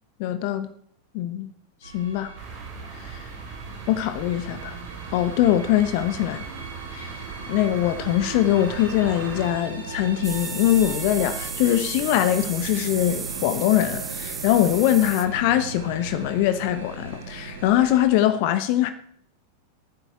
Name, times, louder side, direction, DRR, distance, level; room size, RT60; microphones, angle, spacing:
voice 1, 0.2-0.7 1.1-1.5 1.9-2.3 3.9-4.8 5.1-6.4 6.9-7.1 7.5-18.9, left 12 dB, 45° left, 1.0 m, -22 dB
sound 1, 1.8-18.0, right 4 dB, 75° right, 2.6 m, -38 dB
sound 2, 2.4-9.5, right 5 dB, 35° right, 4.1 m, -40 dB
sound 3, 10.2-15.3, right 6 dB, 20° right, 1.2 m, -35 dB
23.0 x 9.4 x 4.4 m
figure-of-eight pair, 90°, 0 cm